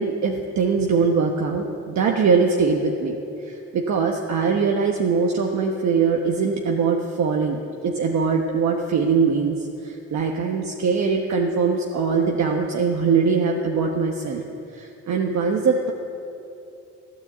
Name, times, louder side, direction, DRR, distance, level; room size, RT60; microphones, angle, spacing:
voice 1, 0.0-14.4 14.7-15.9, right 5 dB, 65° right, 1 dB, 1.2 m, -22 dB
15.5 x 9.6 x 8.0 m, 2.8 s
cardioid pair, 90°, 30 cm